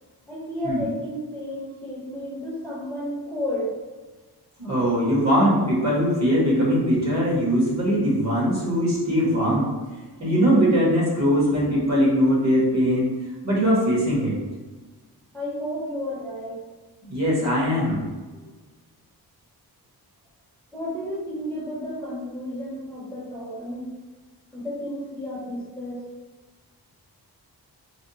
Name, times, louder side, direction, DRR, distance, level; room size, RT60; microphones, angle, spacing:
voice 1, 0.3-3.7 15.3-16.6 20.7-23.9 24.5-26.0, left 1 dB, 5° left, -8 dB, 0.7 m, -32 dB
voice 2, 4.6-9.7 10.2-13.1 13.4-14.3 17.0-18.0, equal, 40° right, -6 dB, 1.2 m, -21 dB
3.4 x 2.2 x 2.7 m, 1.3 s
wide cardioid pair, 130°, 39 cm